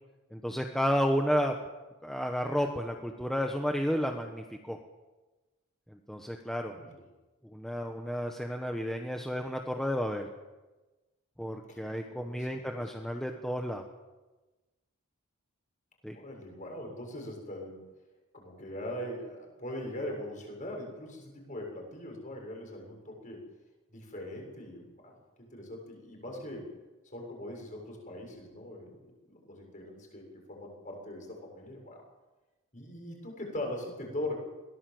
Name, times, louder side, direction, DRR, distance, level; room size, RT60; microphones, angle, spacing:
voice 1, 0.3-1.5 2.0-4.8 5.9-6.8 7.5-10.3 11.4-13.8 16.0-16.2, equal, ahead, 2 dB, 1.2 m, -32 dB
voice 2, 11.7-12.8 16.1-17.8 18.3-23.4 23.9-26.7 27.0-32.0 32.7-34.3, left 1 dB, 35° left, 1 dB, 7.2 m, -41 dB
22.5 x 18.0 x 7.9 m, 1.2 s
head